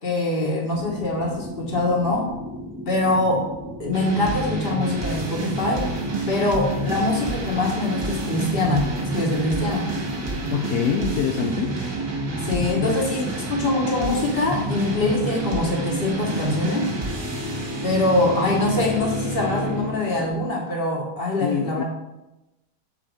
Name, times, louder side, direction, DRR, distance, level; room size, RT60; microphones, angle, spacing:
voice 1, 0.0-2.3 2.9-3.5 3.8-5.9 6.3-9.9 12.4-13.2 13.5-16.9 17.8-21.8, left 2 dB, 35° left, -1 dB, 1.5 m, -23 dB
sound 1, 0.7-20.5, equal, 10° right, 1.5 m, -37 dB
sound 2, 3.9-19.9, right 2 dB, 35° right, 1.4 m, -29 dB
voice 2, 10.5-11.7 12.8-13.0 21.4-21.8, left 7 dB, 70° left, 4 dB, 1.0 m, -24 dB
7.5 x 4.3 x 4.8 m, 0.97 s
omnidirectional pair, 1.8 m